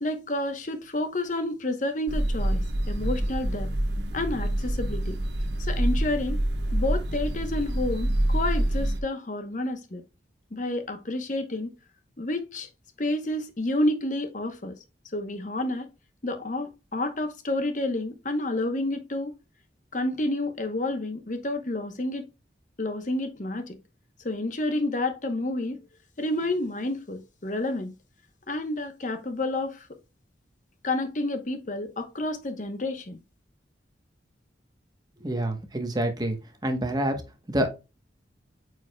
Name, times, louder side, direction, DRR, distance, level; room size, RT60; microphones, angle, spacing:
voice 1, 0.0-3.7 4.1-5.2 5.6-6.4 6.7-10.0 10.5-11.7 12.2-12.7 13.0-14.8 15.1-15.9 16.2-19.3 19.9-22.2 22.8-23.8 24.2-25.8 26.2-27.9 28.5-29.9 30.8-33.2, left 2 dB, 45° left, 0.9 m, -29 dB
sound 1, 2.1-9.0, right 1 dB, 70° right, 1.2 m, -26 dB
voice 2, 35.2-36.4 36.6-37.2 37.5-37.7, right 1 dB, 20° right, 1.0 m, -27 dB
9.1 x 4.8 x 2.2 m
head